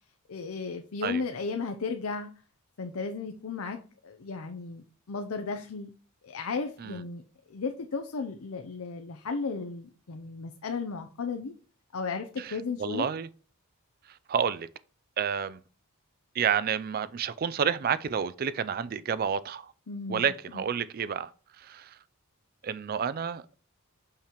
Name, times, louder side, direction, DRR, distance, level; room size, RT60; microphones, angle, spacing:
voice 1, 0.3-2.3 2.8-5.9 6.2-7.2 7.5-11.5 11.9-13.1 19.9-20.3, left 4 dB, 70° left, 0.6 m, -34 dB
voice 2, 12.4-13.3 14.1-14.7 15.2-15.6 16.3-19.7 20.1-21.3 21.6-22.0 22.6-23.6, right 7 dB, 40° right, 0.3 m, -30 dB
6.6 x 5.7 x 2.9 m
head